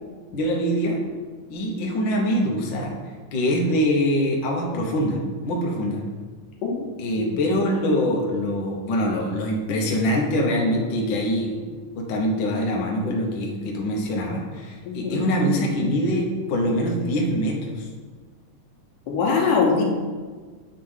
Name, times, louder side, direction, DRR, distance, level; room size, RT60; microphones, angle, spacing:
voice 1, 0.3-1.0 1.5-3.0 3.3-6.0 7.0-17.9, equal, 65° left, -1 dB, 1.1 m, -24 dB
voice 2, 14.9-15.2 19.1-19.8, left 5 dB, 80° left, -1 dB, 2.6 m, -22 dB
8.8 x 3.2 x 5.6 m, 1.5 s
omnidirectional pair, 3.6 m